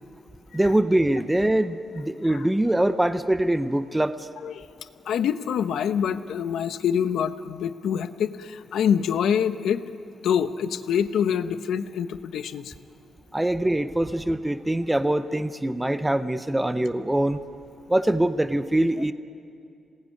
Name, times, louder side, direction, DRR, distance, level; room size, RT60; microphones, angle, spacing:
voice 1, 0.5-4.3 13.3-17.4 17.9-19.1, right 1 dB, 5° right, 11 dB, 0.5 m, -23 dB
voice 2, 5.0-9.8 10.2-12.7, left 8 dB, 85° left, 11 dB, 0.9 m, -25 dB
26.5 x 19.0 x 9.6 m, 2.5 s
wide cardioid pair, 170°, 0 cm